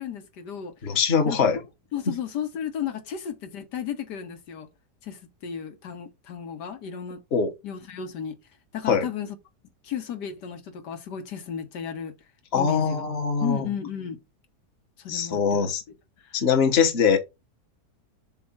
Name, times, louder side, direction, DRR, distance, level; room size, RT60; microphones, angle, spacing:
voice 1, 0.0-0.7 1.2-1.4 1.9-4.7 5.0-7.2 7.6-8.4 8.7-9.4 9.8-12.1 12.5-13.0 13.4-14.2 15.0-15.7, left 8 dB, 85° left, 1.7 m, -33 dB
voice 2, 0.8-1.6 7.3-7.5 8.9-9.1 12.5-13.7 15.1-15.8 16.3-17.2, left 6 dB, 40° left, 1.3 m, -22 dB
7.6 x 2.5 x 5.8 m
omnidirectional pair, 1.8 m